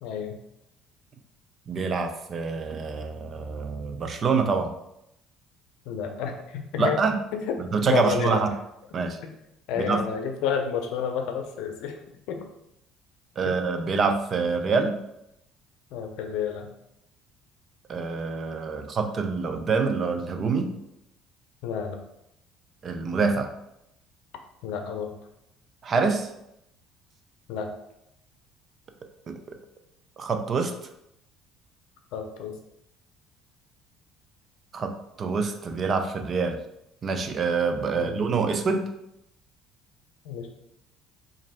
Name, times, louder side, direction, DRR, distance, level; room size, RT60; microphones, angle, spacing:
voice 1, 0.0-0.4 5.9-7.0 7.5-8.4 9.2-9.3 9.7-11.9 12.3-12.4 13.5-13.6 15.9-16.7 21.6-22.0 24.6-25.1 27.5-27.7 32.1-32.5 37.9-38.2 40.3-40.5, left 7 dB, 80° left, 5 dB, 0.6 m, -30 dB
voice 2, 1.7-4.7 6.8-7.2 7.6-8.5 8.9-9.2 9.8-10.0 13.4-15.0 17.9-20.8 22.8-23.5 25.8-26.3 29.3-29.6 30.2-30.7 34.7-36.6 37.0-38.9, right 4 dB, 40° right, 6 dB, 0.4 m, -26 dB
3.0 x 2.6 x 4.1 m, 0.82 s
cardioid pair, 110°, 0 cm